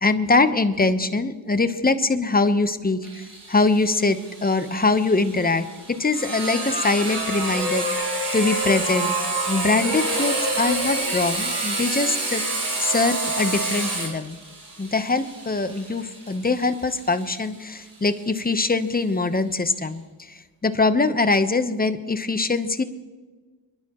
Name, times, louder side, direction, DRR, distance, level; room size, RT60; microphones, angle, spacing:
voice 1, 0.0-8.1 8.3-9.2 9.5-14.4 14.8-22.8, left 3 dB, 20° left, 10 dB, 1.0 m, -23 dB
Sawing, 3.0-18.5, right 2 dB, 60° right, 5.1 m, -29 dB
sound 1, 7.5-12.1, equal, 35° right, 3.3 m, -29 dB
27.0 x 11.0 x 3.1 m, 1.4 s
cardioid pair, 65°, 46 cm